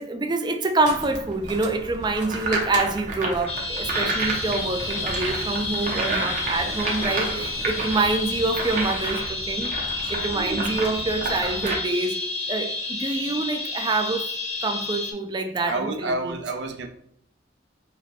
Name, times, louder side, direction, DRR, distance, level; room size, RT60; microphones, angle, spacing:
voice 1, 0.0-9.8 10.1-12.2 12.5-14.3 14.6-16.4, right 3 dB, 25° right, 0.3 m, -26 dB
sound 1, 0.8-11.7, right 2 dB, 45° right, 0.8 m, -31 dB
sound 2, 3.5-15.1, left 3 dB, 35° left, 0.7 m, -30 dB
sound 3, 4.2-9.2, left 2 dB, 65° left, 0.5 m, -42 dB
voice 2, 5.8-7.5 7.8-8.0 10.0-10.6 15.7-16.9, right 3 dB, 70° right, 0.5 m, -32 dB
4.8 x 2.2 x 2.9 m
head